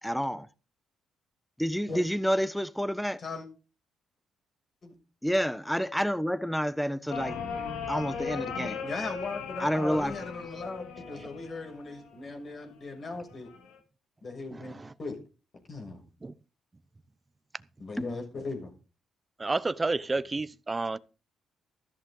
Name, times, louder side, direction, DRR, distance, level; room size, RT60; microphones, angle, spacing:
voice 1, 0.0-0.5 1.6-3.2 5.2-7.4 7.9-8.8 9.6-10.1 18.0-18.1, equal, ahead, 1.0 m, -29 dB
sound 1, 7.1-12.1 13.3-13.8, left 6 dB, 85° left, 2.9 m, -37 dB
voice 2, 8.8-13.5 14.2-15.2 15.7-16.0 17.8-18.7, left 3 dB, 45° left, 6.7 m, -38 dB
voice 3, 14.5-14.9 16.2-16.3 19.4-21.0, right 3 dB, 25° right, 0.8 m, -31 dB
14.0 x 13.0 x 3.9 m
cardioid pair, 90°, 0 cm